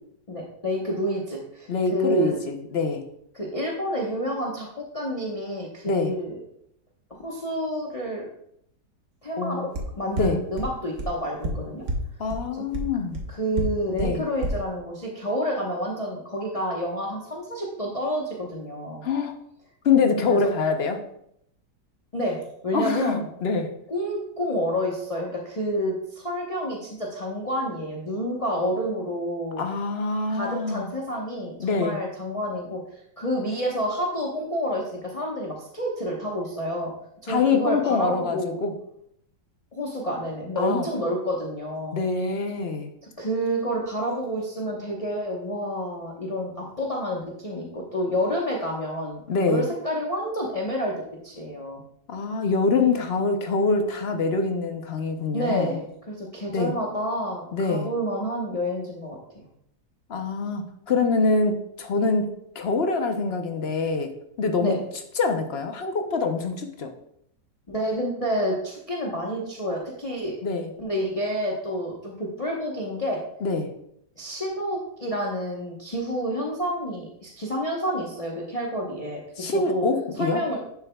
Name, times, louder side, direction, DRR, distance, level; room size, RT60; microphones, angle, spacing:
voice 1, 0.3-2.4 3.3-6.4 7.1-8.3 9.2-9.7 10.0-11.8 12.5-12.6 13.3-19.0 20.3-20.5 22.1-22.4 22.6-23.2 23.9-29.6 30.3-36.9 37.2-38.6 39.7-42.0 43.2-50.9 51.2-51.8 55.3-59.5 64.6-64.8 67.7-70.4 70.8-73.2 74.2-79.2 79.5-79.8 80.1-80.6, equal, 25° left, -3 dB, 0.9 m, -29 dB
voice 2, 1.7-3.0 5.9-6.2 9.4-9.7 10.2-10.4 12.2-13.2 14.0-14.2 19.0-19.3 19.8-21.0 22.7-23.7 29.6-30.9 31.6-32.0 37.3-38.7 40.6-40.9 41.9-42.9 49.3-49.7 52.1-55.8 56.5-56.7 57.5-57.9 60.1-62.3 62.5-64.1 64.4-64.7 65.2-66.9 70.4-70.7 73.4-73.7 79.4-80.4, left 4 dB, 55° left, 5 dB, 0.7 m, -25 dB
sound 1, 9.7-9.8 10.2-10.3 10.6-10.7 11.0-11.1 11.4-11.5 11.9-12.0 12.3-12.4 12.7-12.8 13.1-13.2 13.6-13.7 14.0-14.1 14.4-14.5, right 2 dB, 50° right, 1.3 m, -27 dB
10.5 x 7.0 x 2.3 m, 0.73 s
omnidirectional pair, 1.9 m